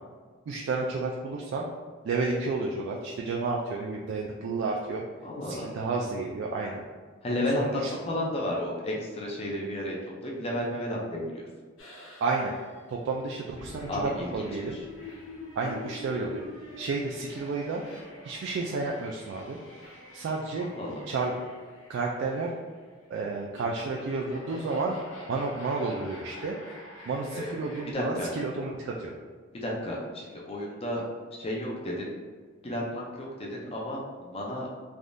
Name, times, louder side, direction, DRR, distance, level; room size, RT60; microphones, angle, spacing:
voice 1, 0.5-1.7 2.0-5.0 5.4-6.8 7.3-7.9 12.2-12.5 12.9-14.8 15.6-16.4 16.8-17.8 18.2-19.6 20.1-20.7 21.1-21.3 21.9-22.5 23.1-25.0 25.3-26.6 27.1-29.1, right 3 dB, 60° right, -1 dB, 0.3 m, -31 dB
voice 2, 5.2-5.7 7.2-10.0 10.2-11.5 13.9-14.3 14.7-14.8 20.6-21.0 27.3-27.5 27.9-28.3 29.5-31.0 31.3-32.1 32.6-34.7, left 1 dB, 30° left, -3 dB, 0.5 m, -32 dB
sound 1, 11.8-27.9, left 1 dB, 75° left, 0.8 m, -46 dB
3.4 x 2.3 x 2.5 m, 1.5 s
head